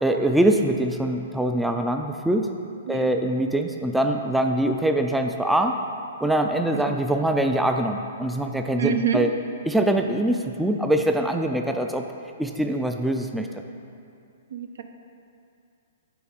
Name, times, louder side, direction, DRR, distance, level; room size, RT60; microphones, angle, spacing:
voice 1, 0.0-2.5 2.9-5.7 6.2-9.3 9.7-12.0 12.4-13.5, right 1 dB, 5° right, 4 dB, 0.3 m, -23 dB
voice 2, 8.8-9.2 9.9-10.0 14.5-14.8, right 8 dB, 65° right, 7 dB, 0.5 m, -27 dB
6.9 x 4.1 x 6.4 m, 2.5 s
figure-of-eight pair, 115°, 0 cm